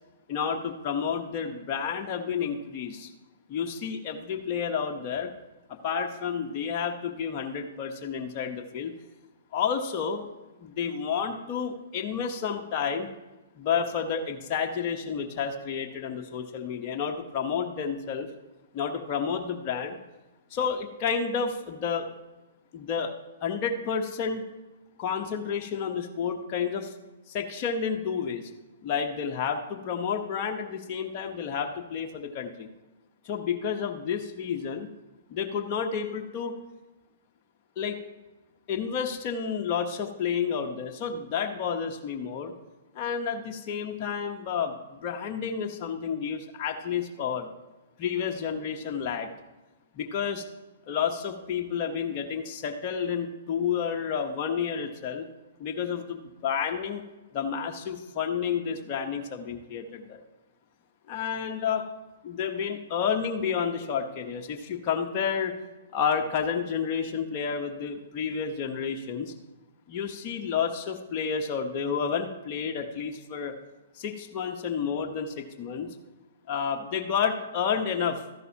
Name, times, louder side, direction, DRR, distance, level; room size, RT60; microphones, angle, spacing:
voice 1, 0.3-3.1 3.5-5.3 5.7-8.9 9.5-10.3 10.6-13.1 13.6-18.3 18.7-19.9 20.5-22.1 22.7-23.1 23.4-24.4 25.0-26.9 27.3-28.5 28.8-32.7 33.2-34.9 35.3-36.6 37.8-38.0 38.7-42.5 42.9-47.5 48.0-49.3 49.9-50.4 50.9-55.3 55.6-57.0 57.3-60.2 61.1-61.9 62.2-65.6 65.9-69.3 69.9-73.5 73.9-76.0 76.5-78.2, left 7 dB, 40° left, 2 dB, 1.0 m, -30 dB
13.5 x 11.0 x 2.9 m, 1.1 s
hypercardioid pair, 120°, 0 cm